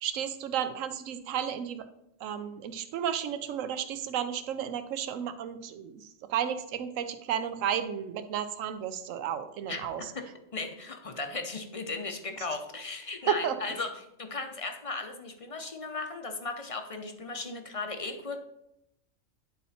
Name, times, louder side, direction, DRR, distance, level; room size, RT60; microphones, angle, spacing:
voice 1, 0.0-1.8 2.2-10.1 12.4-12.5 13.3-13.5, right 9 dB, 75° right, 10 dB, 1.0 m, -33 dB
voice 2, 10.1-13.9 14.2-18.4, left 3 dB, 35° left, 5 dB, 0.6 m, -36 dB
10.0 x 4.2 x 4.2 m, 0.82 s
omnidirectional pair, 1.4 m